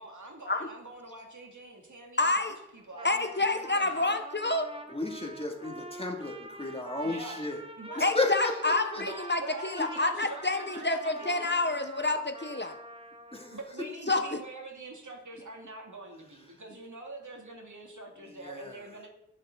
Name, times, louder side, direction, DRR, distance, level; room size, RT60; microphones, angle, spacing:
voice 1, 0.0-4.3 7.0-7.4 7.8-8.1 8.9-11.4 13.5-19.1, right 2 dB, 80° right, 1 dB, 2.6 m, -45 dB
voice 2, 2.2-2.5 3.0-4.7 8.0-12.7 14.1-14.4, left 2 dB, 35° left, 7 dB, 1.1 m, -28 dB
Trumpet, 2.8-13.6, right 1 dB, 20° right, 1.4 m, -46 dB
voice 3, 4.9-7.6 8.0-8.5 8.9-9.0 10.2-10.3 13.3-13.6 18.4-18.8, left 2 dB, 20° left, 1 dB, 2.6 m, -33 dB
18.5 x 7.5 x 3.9 m, 0.81 s
wide cardioid pair, 50°, 30 cm